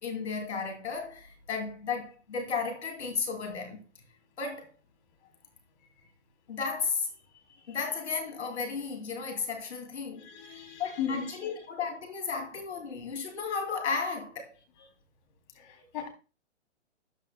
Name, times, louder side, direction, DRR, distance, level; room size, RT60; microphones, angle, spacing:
voice 1, 0.0-3.8 4.4-4.7 6.5-7.1 7.7-10.3 10.8-14.5, left 5 dB, 70° left, 2.9 m, -34 dB
voice 2, 10.2-11.4 15.6-16.1, left 7 dB, 40° left, 3.2 m, -36 dB
12.5 x 11.0 x 2.2 m
hypercardioid pair, 130°, 35 cm